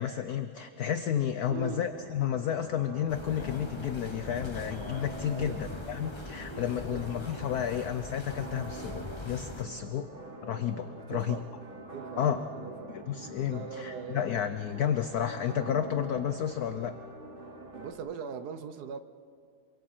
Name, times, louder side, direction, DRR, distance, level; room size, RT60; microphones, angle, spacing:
voice 1, 0.0-10.1 10.4-11.4 12.2-12.4 12.9-17.0, left 9 dB, 70° left, 0.9 m, -31 dB
sound 1, 1.4-17.9, right 3 dB, 30° right, 1.4 m, -45 dB
voice 2, 1.5-1.9 3.2-3.3 5.3-5.7 6.5-7.1 11.0-11.5 11.8-14.3 17.7-19.0, right 7 dB, 60° right, 1.1 m, -42 dB
sound 2, 3.1-9.6, left 2 dB, 25° left, 0.6 m, -42 dB
27.0 x 25.0 x 4.4 m
omnidirectional pair, 2.3 m